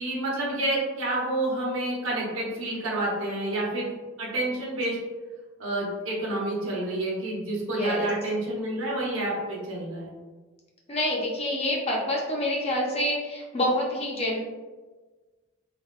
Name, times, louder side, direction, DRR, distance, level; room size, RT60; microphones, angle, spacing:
voice 1, 0.0-3.9 4.2-5.0 5.6-10.1, right 1 dB, 65° right, -4 dB, 0.9 m, -29 dB
voice 2, 7.7-8.1 10.9-14.4, left 1 dB, 25° left, -2 dB, 0.4 m, -27 dB
3.4 x 2.2 x 2.3 m, 1.3 s
head